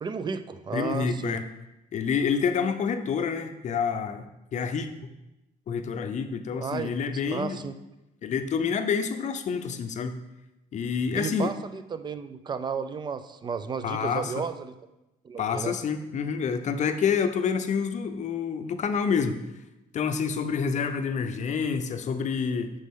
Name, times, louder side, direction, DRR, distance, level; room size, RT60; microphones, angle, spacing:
voice 1, 0.0-1.4 6.6-6.9 7.3-7.7 11.2-14.7 15.2-15.8, right 5 dB, 25° right, 11 dB, 0.4 m, -33 dB
voice 2, 0.7-1.4 1.9-5.1 5.7-7.6 8.2-10.2 10.7-11.5 13.8-14.4 15.4-19.4 19.9-22.7, left 6 dB, 45° left, 8 dB, 0.6 m, -28 dB
7.5 x 5.2 x 3.7 m, 0.96 s
cardioid pair, 110°, 17 cm